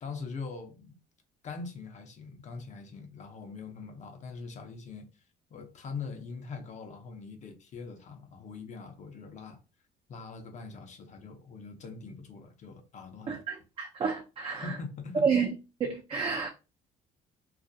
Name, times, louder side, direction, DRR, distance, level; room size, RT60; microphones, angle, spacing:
voice 1, 0.0-1.0 1.4-5.1 5.5-9.6 10.1-13.4 14.6-15.3, left 4 dB, 45° left, 0.6 m, -42 dB
voice 2, 13.3-14.8 15.2-15.5 15.8-16.5, right 6 dB, 35° right, 0.4 m, -30 dB
2.3 x 2.0 x 2.5 m
cardioid pair, 110°, 17 cm